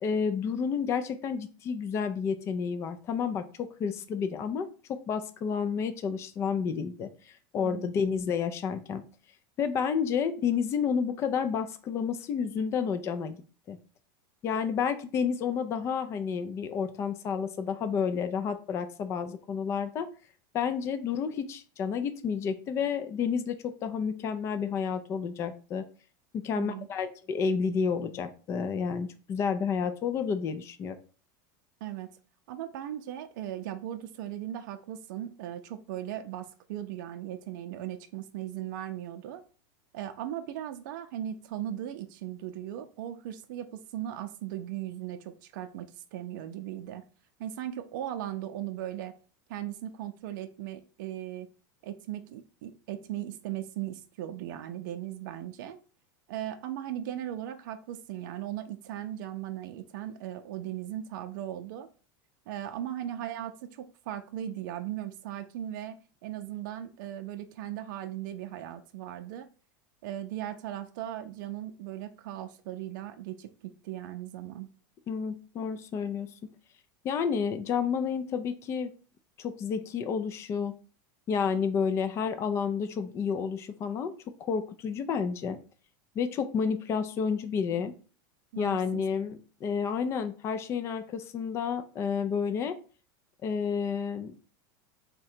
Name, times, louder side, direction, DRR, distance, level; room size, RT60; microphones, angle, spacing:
voice 1, 0.0-9.0 9.6-13.4 13.7-13.8 14.4-20.1 20.5-25.8 26.3-31.0 75.1-76.3 77.0-78.9 79.4-80.7 81.3-84.1 84.4-85.6 86.2-87.9 88.6-92.8 93.4-94.4, left 6 dB, 25° left, 9 dB, 0.3 m, -30 dB
voice 2, 7.6-7.9 26.6-26.9 31.8-32.1 32.5-39.4 39.9-47.0 47.4-49.1 49.5-51.5 51.8-55.8 56.3-61.9 62.5-69.5 70.0-73.5 73.8-74.7 87.7-87.8 88.5-89.0, right 12 dB, 65° right, 7 dB, 0.5 m, -38 dB
3.7 x 2.2 x 4.3 m, 0.37 s
supercardioid pair, 155°, 11 cm